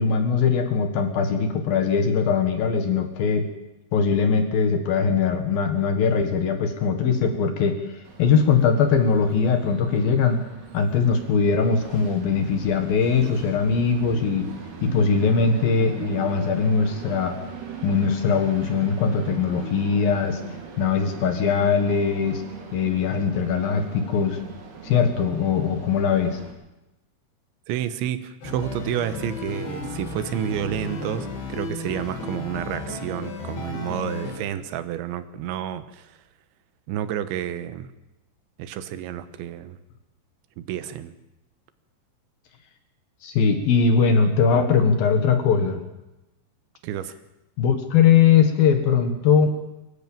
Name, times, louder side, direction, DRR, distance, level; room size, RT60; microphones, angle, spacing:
voice 1, 0.0-3.5 3.9-7.8 8.2-10.4 10.7-14.5 14.8-17.4 17.8-20.4 20.8-22.4 22.7-24.4 24.8-26.4 43.2-45.8 47.6-49.5, left 6 dB, 60° left, 6 dB, 3.1 m, -21 dB
Train, 8.0-26.5, right 6 dB, 65° right, 4.7 m, -39 dB
voice 2, 27.7-36.2 36.9-37.9 38.6-39.8 40.6-41.1 46.8-47.1, right 10 dB, 85° right, 12 dB, 3.4 m, -30 dB
sound 1, 28.4-34.4, left 2 dB, 90° left, 6.9 m, -33 dB
23.5 x 14.0 x 8.9 m, 0.95 s
omnidirectional pair, 5.2 m